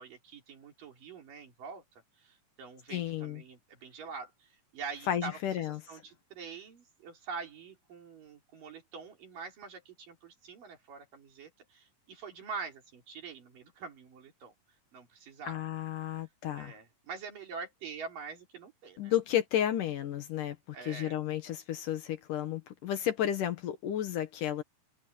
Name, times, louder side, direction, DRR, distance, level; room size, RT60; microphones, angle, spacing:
voice 1, 0.0-14.5 14.9-15.6 16.6-19.1 20.7-21.2, right 5 dB, 80° right, 5.4 m, -45 dB
voice 2, 2.9-3.4 5.1-6.0 15.4-16.7 19.0-20.6 20.8-24.6, left 11 dB, 75° left, 2.9 m, -32 dB
omnidirectional pair, 3.8 m